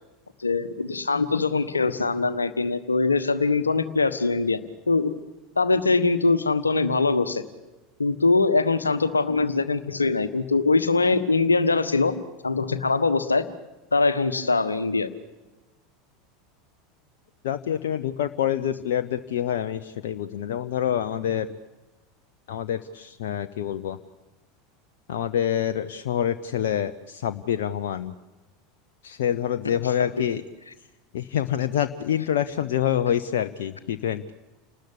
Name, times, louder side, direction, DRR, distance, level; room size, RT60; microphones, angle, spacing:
voice 1, 0.4-5.1 5.6-7.4 8.0-12.1 12.4-13.5 13.9-15.1 30.0-30.4, left 3 dB, 85° left, 11 dB, 1.3 m, -22 dB
voice 2, 17.4-21.5 22.5-24.0 25.1-28.1 29.0-30.4 31.1-34.3, left 10 dB, 65° left, 9 dB, 0.9 m, -26 dB
30.0 x 20.0 x 8.6 m, 1.1 s
figure-of-eight pair, 80°, 0 cm